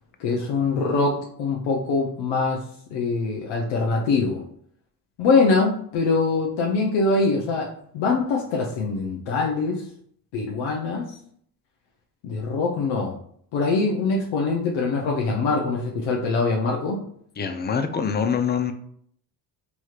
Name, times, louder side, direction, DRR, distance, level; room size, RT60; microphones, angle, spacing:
voice 1, 0.2-2.6 2.9-4.4 5.2-7.7 7.9-9.8 10.3-11.2 12.2-13.2 13.5-17.0, left 3 dB, 75° left, -1 dB, 0.7 m, -23 dB
voice 2, 17.4-18.7, left 6 dB, 25° left, 8 dB, 0.3 m, -24 dB
3.1 x 3.0 x 2.4 m, 0.64 s
supercardioid pair, 60°, 47 cm